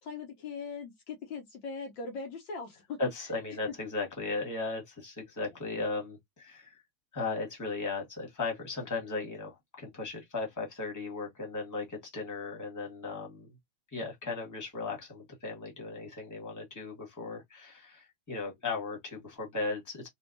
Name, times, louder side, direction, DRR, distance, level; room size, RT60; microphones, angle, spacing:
voice 1, 0.0-3.0, left 4 dB, 70° left, 1.4 m, -40 dB
voice 2, 3.0-6.7 7.1-13.5 13.9-20.1, left 3 dB, 10° left, 1.2 m, -36 dB
3.4 x 2.7 x 2.6 m
omnidirectional pair, 2.2 m